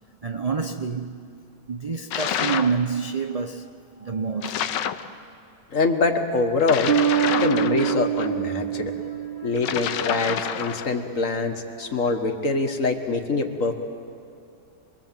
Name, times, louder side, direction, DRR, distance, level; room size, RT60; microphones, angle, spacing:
voice 1, 0.2-1.3 1.7-5.1 8.7-9.8 10.6-10.9 11.8-12.2, right 5 dB, 60° right, 0.4 m, -29 dB
sound 1, 2.1-2.8 4.4-5.1 6.6-8.3 9.6-10.9, left 9 dB, 80° left, 1.4 m, -28 dB
voice 2, 5.7-6.9 7.4-8.9 9.4-13.7, left 3 dB, 50° left, 1.8 m, -24 dB
sound 2, 6.9-10.2, right 11 dB, 40° right, 0.9 m, -25 dB
27.0 x 22.0 x 7.5 m
omnidirectional pair, 1.9 m